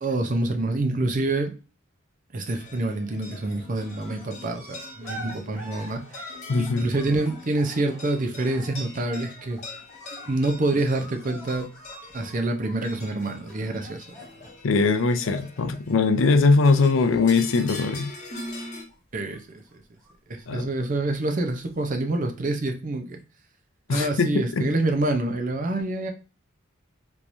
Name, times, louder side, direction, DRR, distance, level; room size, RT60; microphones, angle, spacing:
voice 1, 0.0-1.5 2.3-6.0 6.6-9.6 10.3-11.7 12.1-14.1 19.1-19.6 20.3-23.2 23.9-26.1, right 2 dB, 40° right, 0.6 m, -27 dB
sound 1, 2.4-18.8, left 1 dB, 35° left, 1.1 m, -43 dB
sound 2, 2.6-3.0 3.3-15.6 15.9-18.0 18.3-19.0 19.3-21.1 21.8-21.9, equal, 5° left, 1.6 m, -46 dB
voice 2, 6.5-6.9 14.6-18.1 20.5-20.7 23.9-24.7, left 4 dB, 70° left, 0.5 m, -21 dB
3.5 x 3.0 x 2.6 m
head